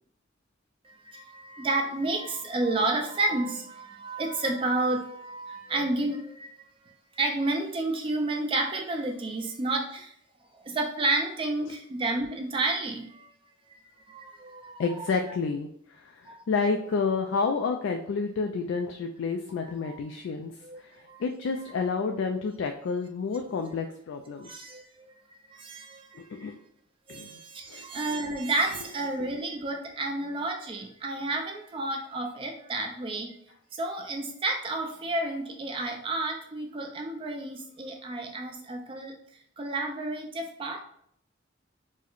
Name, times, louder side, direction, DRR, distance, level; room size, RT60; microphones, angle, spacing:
voice 1, 0.8-6.6 7.1-10.1 10.5-13.3 14.1-14.9 16.3-16.4 19.8-20.0 20.6-21.2 24.4-25.1 25.5-26.5 27.1-33.4 33.7-39.1 39.6-40.8, right 2 dB, 25° right, 3 dB, 0.3 m, -31 dB
voice 2, 14.8-24.7 26.1-26.5 27.1-27.4 27.7-28.2, left 4 dB, 70° left, 4 dB, 0.3 m, -30 dB
4.5 x 2.1 x 3.0 m, 0.69 s
head